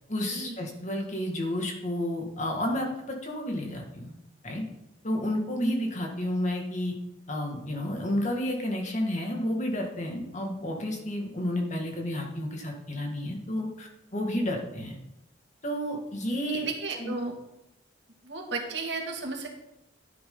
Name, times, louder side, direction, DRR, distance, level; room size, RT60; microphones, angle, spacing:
voice 1, 0.1-4.1 4.4-4.6 5.0-6.9 7.3-15.0 15.6-16.7 17.0-17.1, left 1 dB, 40° left, 1 dB, 2.2 m, -31 dB
voice 2, 16.5-17.4 18.2-19.5, right 3 dB, 70° right, 1 dB, 2.4 m, -34 dB
12.0 x 9.9 x 4.0 m, 0.89 s
head